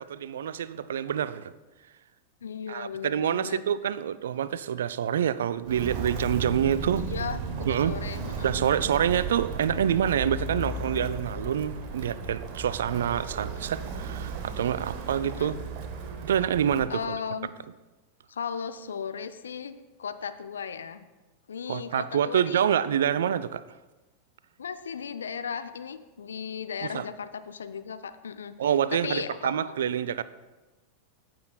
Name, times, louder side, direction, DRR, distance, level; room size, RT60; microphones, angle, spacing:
voice 1, 0.1-1.5 2.7-7.0 7.7-8.0 8.4-15.5 16.2-17.0 21.7-23.6 26.9-27.0 28.6-30.2, right 9 dB, 60° right, 16 dB, 0.3 m, -27 dB
voice 2, 2.4-3.6 6.9-8.6 15.2-15.5 16.9-17.5 18.3-21.1 21.5-22.7 24.6-28.6 28.9-29.9, left 6 dB, 70° left, 11 dB, 0.5 m, -36 dB
Walk footsteps, 5.6-16.9, right 4 dB, 45° right, 1.0 m, -35 dB
14.5 x 7.6 x 2.3 m, 1.1 s
figure-of-eight pair, 90°, 0 cm